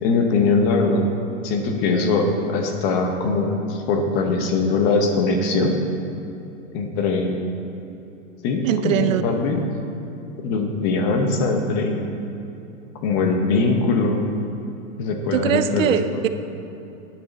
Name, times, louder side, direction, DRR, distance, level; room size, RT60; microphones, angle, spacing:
voice 1, 0.0-1.1 1.4-5.7 6.7-7.4 8.4-9.7 10.4-12.0 13.0-14.2 15.0-16.2, left 3 dB, 25° left, 4 dB, 0.8 m, -21 dB
voice 2, 8.6-9.2 15.3-16.3, right 9 dB, 75° right, 10 dB, 0.7 m, -21 dB
10.0 x 9.8 x 4.0 m, 2.9 s
supercardioid pair, 165°, 40 cm